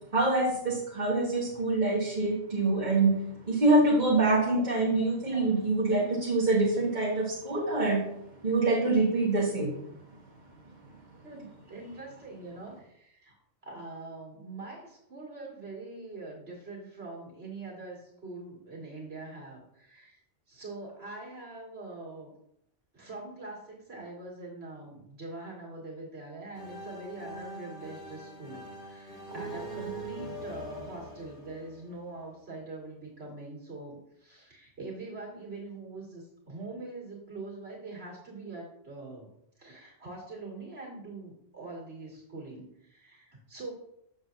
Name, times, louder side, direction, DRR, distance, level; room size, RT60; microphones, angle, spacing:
voice 1, 0.1-8.1 8.4-9.8, right 2 dB, 40° right, -6 dB, 1.7 m, -25 dB
voice 2, 11.2-13.4 13.6-20.2 20.5-22.3 22.9-39.3 39.6-43.7, right 2 dB, 60° right, -4 dB, 2.4 m, -43 dB
sound 1, 26.5-32.3, right 1 dB, 65° left, 2.1 m, -42 dB
7.1 x 7.1 x 2.6 m, 0.75 s
omnidirectional pair, 1.2 m